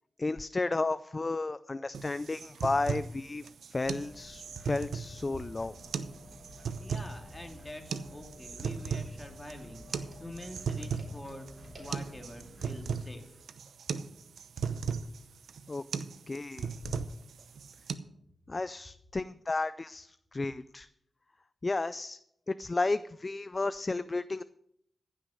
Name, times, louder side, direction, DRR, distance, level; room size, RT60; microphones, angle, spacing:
voice 1, 0.2-5.7 15.7-15.8 16.3-16.8 18.5-20.9 21.6-22.2 22.5-24.4, left 3 dB, 35° left, 15 dB, 0.4 m, -33 dB
sound 1, 1.9-17.9, right 6 dB, 85° right, 0.7 m, -37 dB
sound 2, 3.8-12.9, equal, 40° right, 3.8 m, -51 dB
voice 2, 6.8-13.4, left 1 dB, 15° left, 3 dB, 2.4 m, -46 dB
15.0 x 6.3 x 6.4 m, 0.73 s
cardioid pair, 75°, 0 cm